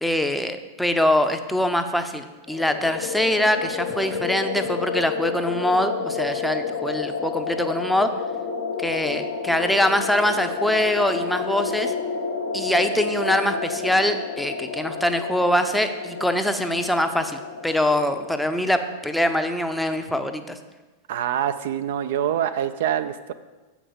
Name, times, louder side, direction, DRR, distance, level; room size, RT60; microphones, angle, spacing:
voice 1, 0.0-8.1 8.8-11.9 12.5-20.6, left 1 dB, ahead, 7 dB, 0.6 m, -23 dB
sound 1, 2.5-19.4, left 5 dB, 55° left, 0.6 m, -30 dB
voice 2, 21.1-23.3, right 10 dB, 55° right, 10 dB, 0.3 m, -25 dB
7.5 x 5.2 x 6.5 m, 1.2 s
figure-of-eight pair, 90°, 0 cm